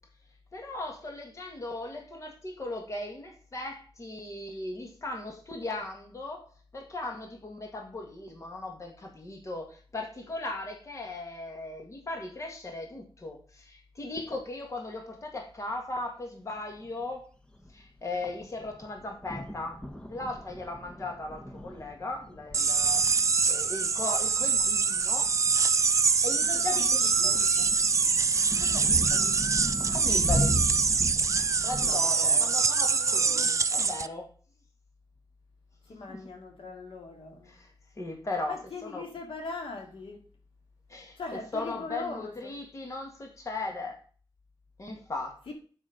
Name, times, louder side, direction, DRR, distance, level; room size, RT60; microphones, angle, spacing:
voice 1, 0.5-6.5 6.7-17.3 17.7-19.8 20.1-25.6 26.2-27.7 28.2-28.4 29.8-30.6 31.6-34.3 36.1-36.2 37.6-37.7 38.0-38.6 38.8-39.0 40.9-41.2 41.5-44.0 44.8-45.5, left 2 dB, 35° left, 1.8 m, -37 dB
sound 1, 16.8-17.1 17.5-17.7 18.1-31.9, equal, 10° left, 0.9 m, -37 dB
sound 2, 22.5-34.1, right 5 dB, 35° right, 0.4 m, -25 dB
voice 2, 23.0-23.4 23.7-23.8 26.7-27.5 28.6-29.4 31.8-32.5 35.8-37.6 38.5-40.3 41.2-42.5 45.5-45.6, left 3 dB, 75° left, 2.2 m, -41 dB
7.7 x 5.6 x 4.9 m
wide cardioid pair, 160°, 9 cm